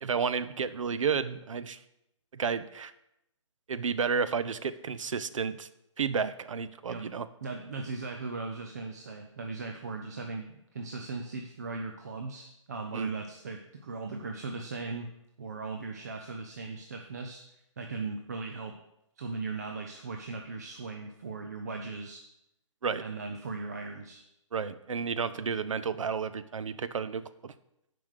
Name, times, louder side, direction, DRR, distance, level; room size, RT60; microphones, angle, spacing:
voice 1, 0.0-1.8 2.3-2.9 3.7-5.7 6.0-7.3 12.9-13.1 22.8-23.0 24.5-27.5, right 6 dB, 75° right, 14 dB, 0.6 m, -31 dB
voice 2, 7.4-15.1 15.4-17.4 17.8-18.8 19.2-22.2 23.0-24.2, right 3 dB, 30° right, 4 dB, 0.5 m, -38 dB
7.1 x 5.1 x 6.5 m, 0.85 s
hypercardioid pair, 175°, 17 cm